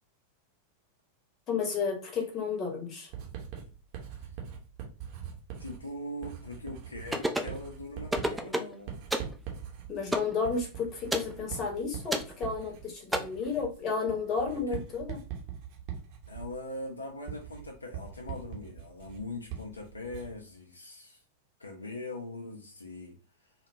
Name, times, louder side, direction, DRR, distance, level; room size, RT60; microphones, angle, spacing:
voice 1, 1.5-3.1 9.9-15.2, left 5 dB, 30° left, 1 dB, 0.8 m, -32 dB
Writing, 3.1-20.5, right 8 dB, 45° right, 0.7 m, -43 dB
voice 2, 5.6-8.9 14.5-14.6 16.3-21.2 21.6-23.5, left 2 dB, 80° left, 2 dB, 0.4 m, -41 dB
sound 1, 7.1-7.6 8.1-8.7 9.1-9.3 10.1-10.3 11.1-11.3 12.1-12.3 13.1-13.2, right 1 dB, 5° right, 0.3 m, -29 dB
2.1 x 2.1 x 3.0 m, 0.36 s
figure-of-eight pair, 90°, 0 cm